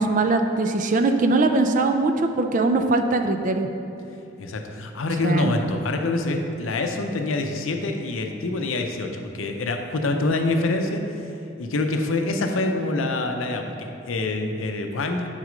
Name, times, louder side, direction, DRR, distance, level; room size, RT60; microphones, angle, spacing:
voice 1, 0.0-3.7 5.2-5.5, right 2 dB, 40° right, 6 dB, 0.4 m, -21 dB
voice 2, 4.4-11.0 11.6-15.3, left 2 dB, 85° left, 4 dB, 0.6 m, -26 dB
6.3 x 4.1 x 5.1 m, 2.7 s
head